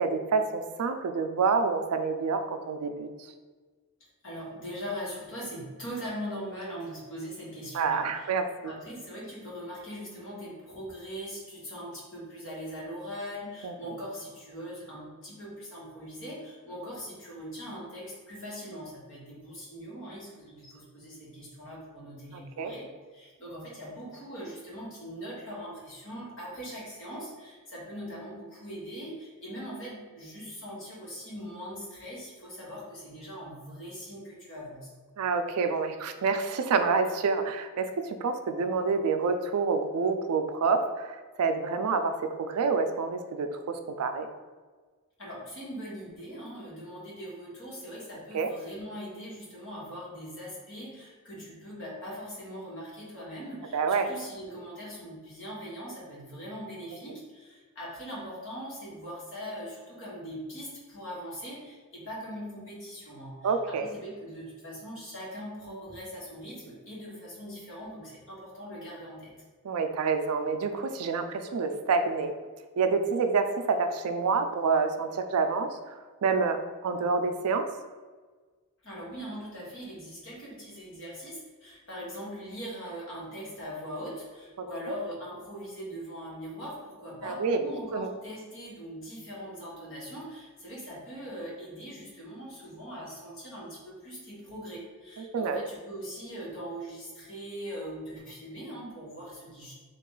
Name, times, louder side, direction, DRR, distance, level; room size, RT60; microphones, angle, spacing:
voice 1, 0.0-3.1 7.7-8.7 13.6-13.9 22.6-22.7 35.2-44.3 48.3-48.5 53.7-54.1 63.4-63.9 69.6-72.3 72.8-75.8 76.2-77.7 84.6-84.7 87.2-87.6 87.9-88.1 95.3-95.6, right 4 dB, 90° right, 8 dB, 0.4 m, -28 dB
voice 2, 4.2-8.3 8.6-34.9 45.2-69.3 78.8-99.7, equal, 60° left, -5 dB, 1.4 m, -41 dB
3.8 x 2.4 x 3.7 m, 1.4 s
head